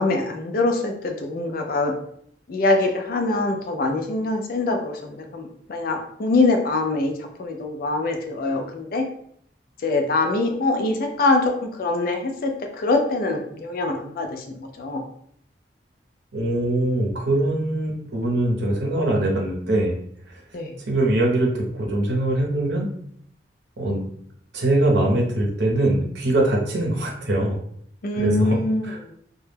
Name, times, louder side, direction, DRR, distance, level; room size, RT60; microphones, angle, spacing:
voice 1, 0.0-1.9 2.5-9.0 9.8-15.0 20.5-20.8 28.0-29.1, left 2 dB, 55° left, 4 dB, 0.4 m, -24 dB
voice 2, 16.3-20.0 20.9-22.9 23.8-24.1 24.5-27.6 28.1-28.5 28.9-29.1, right 1 dB, 70° right, -1 dB, 0.7 m, -22 dB
2.2 x 2.1 x 3.2 m, 0.66 s
head